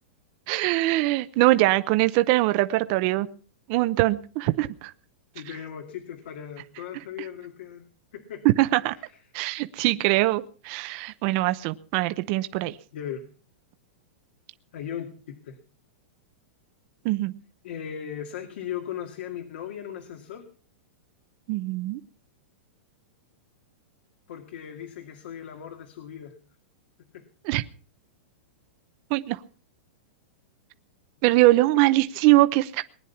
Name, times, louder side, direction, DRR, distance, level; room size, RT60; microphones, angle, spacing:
voice 1, 0.5-3.3 3.7-4.9 8.4-8.9 9.3-12.8 17.0-17.3 21.5-22.0 27.4-27.6 29.1-29.4 31.2-32.8, right 18 dB, 35° right, 11 dB, 0.7 m, -22 dB
voice 2, 5.3-7.8 8.1-8.4 8.9-9.2 12.9-13.2 14.7-15.6 17.6-20.5 24.3-26.3 27.1-27.2, left 9 dB, 65° left, 5 dB, 2.2 m, -37 dB
20.0 x 10.0 x 5.8 m, 0.43 s
supercardioid pair, 165°, 6 cm